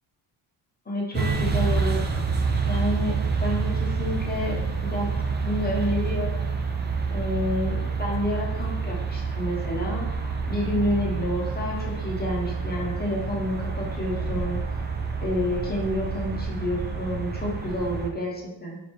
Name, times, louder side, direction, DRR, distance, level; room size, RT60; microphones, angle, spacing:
voice 1, 0.9-2.0 2.6-3.1 3.4-5.1 5.4-6.4 7.1-10.1 10.5-14.6 15.2-18.8, left 1 dB, 20° left, -2 dB, 1.0 m, -29 dB
sound 1, 1.1-18.1, right 4 dB, 25° right, 0.4 m, -28 dB
3.9 x 3.4 x 3.1 m, 0.95 s
cardioid pair, 90°, 48 cm